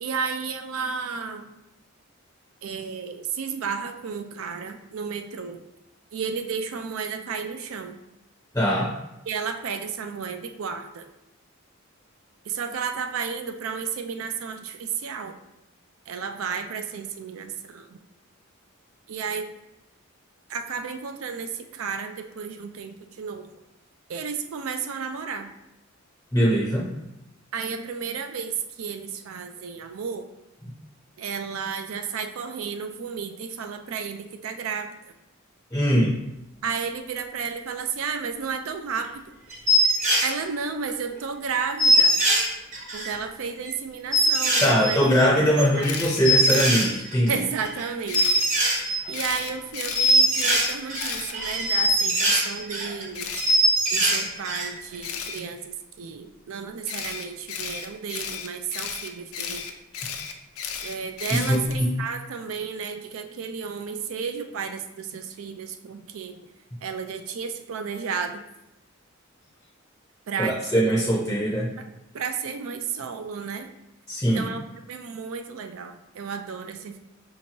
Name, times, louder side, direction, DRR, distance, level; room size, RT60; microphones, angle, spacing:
voice 1, 0.0-1.5 2.6-5.6 6.1-8.0 9.3-11.0 12.5-15.3 16.1-18.0 19.1-19.5 20.5-23.5 24.1-25.5 27.5-30.3 31.2-34.9 36.6-39.1 40.2-42.2 42.9-45.0 45.4-45.9 47.3-48.4 48.7-48.8 49.1-53.3 53.9-59.7 60.8-66.4 66.8-68.4 70.3-70.6 70.8-70.9 72.1-73.7 74.3-77.0, right 6 dB, 75° right, 7 dB, 0.4 m, -32 dB
voice 2, 8.5-8.9 26.3-26.9 35.7-36.2 44.6-47.4 61.3-61.9 70.4-71.7 74.1-74.5, equal, 10° left, -4 dB, 0.5 m, -21 dB
sound 1, 39.0-39.1 39.5-40.3 40.9-41.0 41.2-41.3 41.5-41.6 41.8-43.1 43.6-43.7 44.1-47.3 47.6-47.8 48.1-49.5 49.8-53.0 53.3-54.7 54.9-55.0, equal, 35° right, 0.8 m, -22 dB
Camera, 45.8-46.8 48.1-48.5 49.1-51.9 53.1-53.5 55.0-55.4 56.9-61.8, left 7 dB, 85° left, 0.5 m, -34 dB
5.2 x 2.8 x 2.8 m, 0.90 s
head